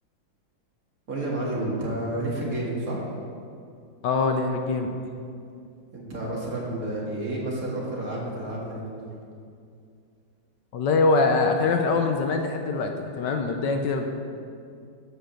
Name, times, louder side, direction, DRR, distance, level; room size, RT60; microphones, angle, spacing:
voice 1, 1.1-3.0 5.9-9.1, right 1 dB, 45° right, -4 dB, 2.2 m, -30 dB
voice 2, 4.0-5.0 10.7-14.1, left 3 dB, 70° left, 4 dB, 1.3 m, -23 dB
13.0 x 5.1 x 6.3 m, 2.4 s
omnidirectional pair, 2.1 m